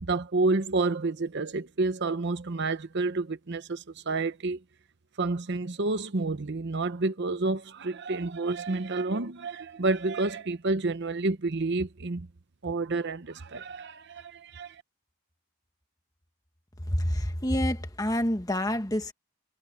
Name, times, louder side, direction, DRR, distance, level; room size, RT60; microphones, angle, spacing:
voice 1, 0.0-4.6 5.2-12.3 12.6-14.8, right 3 dB, 50° right, 0.8 m, -29 dB
voice 2, 16.9-19.1, left 1 dB, 15° left, 1.5 m, -27 dB
head